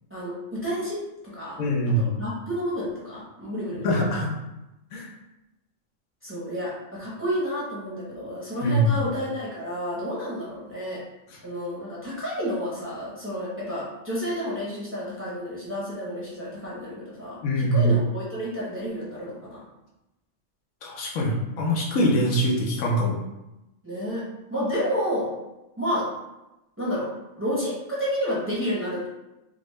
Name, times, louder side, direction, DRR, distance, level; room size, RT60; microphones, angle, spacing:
voice 1, 0.1-1.6 1.9-3.9 6.2-11.0 11.4-19.6 23.8-25.3 25.8-26.1 26.8-27.1 27.4-29.1, equal, 10° right, -8 dB, 0.8 m, -30 dB
voice 2, 1.6-2.2 3.8-4.3 4.9-5.1 8.6-9.0 17.4-17.9 20.8-23.2, equal, 90° left, -2 dB, 1.1 m, -23 dB
3.6 x 2.0 x 3.1 m, 0.95 s
omnidirectional pair, 1.4 m